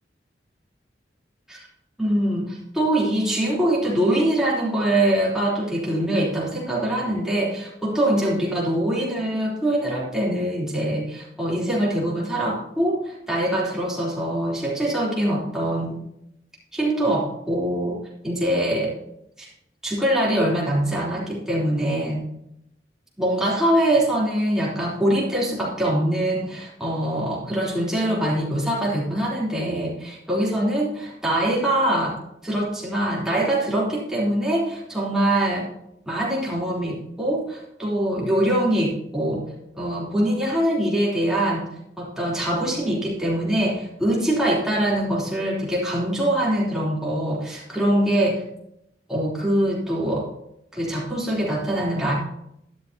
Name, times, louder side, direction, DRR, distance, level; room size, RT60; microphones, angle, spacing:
voice 1, 2.0-16.0 16.7-18.9 19.4-19.5 19.8-22.2 23.2-32.2 32.4-35.7 36.0-39.4 39.7-41.7 42.0-48.4 49.1-50.3 50.7-52.1, right 1 dB, 5° right, -6 dB, 3.4 m, -23 dB
12.5 x 11.5 x 2.9 m, 0.78 s
head